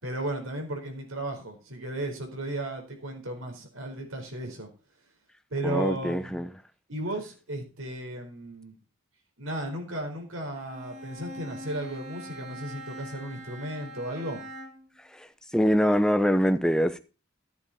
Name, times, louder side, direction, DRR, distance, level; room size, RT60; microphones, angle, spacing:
voice 1, 0.0-4.7 5.5-6.4 6.9-8.7 9.4-14.4, right 1 dB, 80° right, 4.5 m, -35 dB
voice 2, 5.6-6.5 15.1-15.3 15.5-17.0, equal, 5° left, 0.8 m, -24 dB
Bowed string instrument, 10.5-15.0, equal, 35° right, 1.9 m, -43 dB
14.5 x 8.3 x 4.2 m
head